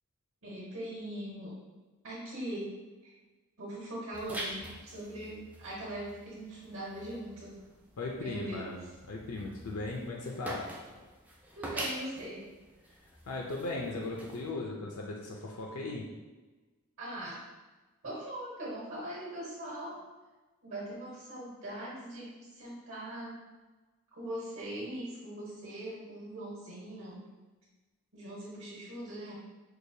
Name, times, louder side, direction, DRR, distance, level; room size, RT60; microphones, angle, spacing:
voice 1, 0.4-1.6 2.0-2.7 3.0-3.1 3.6-7.6 8.1-8.7 11.6-12.4 17.0-17.4 18.0-20.0 20.6-23.4 24.1-27.2 28.1-29.4, right 1 dB, 65° right, -6 dB, 1.2 m, -41 dB
sound 1, 4.1-14.5, right 1 dB, 5° right, 0.3 m, -45 dB
voice 2, 8.0-8.8 9.1-10.7 13.3-16.1, left 2 dB, 70° left, -1 dB, 0.5 m, -37 dB
4.7 x 2.1 x 2.7 m, 1.2 s
head